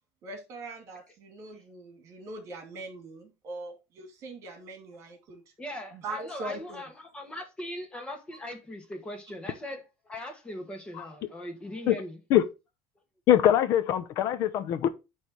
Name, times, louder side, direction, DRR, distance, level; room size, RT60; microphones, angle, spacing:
voice 1, 0.2-5.4 5.9-6.8, right 2 dB, 45° right, 2.5 m, -41 dB
voice 2, 5.6-12.2, left 1 dB, 15° left, 1.6 m, -40 dB
voice 3, 13.3-14.9, left 11 dB, 50° left, 0.7 m, -22 dB
9.6 x 3.3 x 4.5 m
cardioid pair, 145°, 7 cm